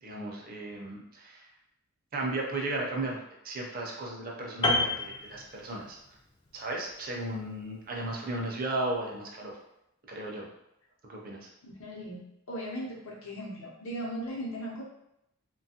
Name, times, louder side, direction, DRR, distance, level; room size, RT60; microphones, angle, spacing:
voice 1, 0.0-1.5 2.1-6.0 6.5-9.6 10.1-10.5 11.1-11.5, right 2 dB, 40° right, -1 dB, 0.5 m, -35 dB
Piano, 4.6-6.1 6.4-6.6, left 2 dB, 20° left, 0.3 m, -29 dB
voice 2, 11.6-14.8, equal, 65° left, -3 dB, 0.7 m, -38 dB
3.0 x 2.2 x 2.8 m, 0.82 s
head